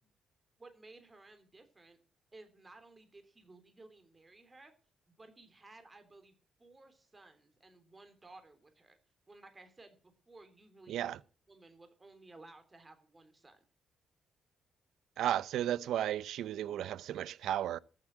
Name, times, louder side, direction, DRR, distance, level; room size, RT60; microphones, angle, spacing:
voice 1, 0.6-2.0 2.3-4.7 5.1-6.3 6.6-9.0 9.3-11.2 11.5-13.6, right 2 dB, 25° right, 3.2 m, -57 dB
voice 2, 10.9-11.2 15.2-17.8, right 11 dB, 80° right, 0.6 m, -34 dB
14.0 x 7.5 x 8.1 m
cardioid pair, 90°, 0 cm